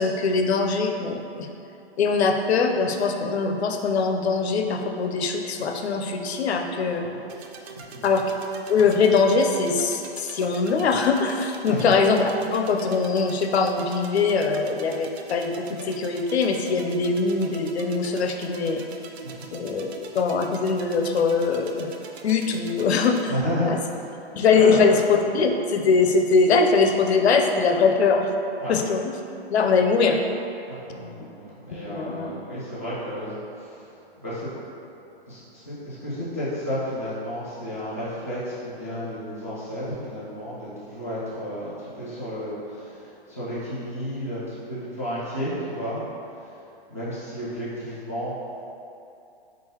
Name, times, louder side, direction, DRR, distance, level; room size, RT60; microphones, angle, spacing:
voice 1, 0.0-1.5 2.0-7.0 8.0-8.3 8.7-18.8 19.5-21.9 22.2-23.3 23.7-23.8 24.4-28.3 28.7-29.2 29.5-30.2 31.9-32.3, left 4 dB, 85° left, 4 dB, 0.6 m, -22 dB
sound 1, 7.3-23.3, right 5 dB, 85° right, 0.5 m, -43 dB
voice 2, 7.7-8.2 11.7-11.9 19.2-19.5 23.3-24.0 24.6-24.9 28.6-28.7 30.7-33.9 34.2-34.5 35.3-46.0 46.3-46.6 46.9-48.4, equal, 15° right, -12 dB, 0.3 m, -32 dB
4.0 x 3.7 x 2.8 m, 2.7 s
hypercardioid pair, 170°, 31 cm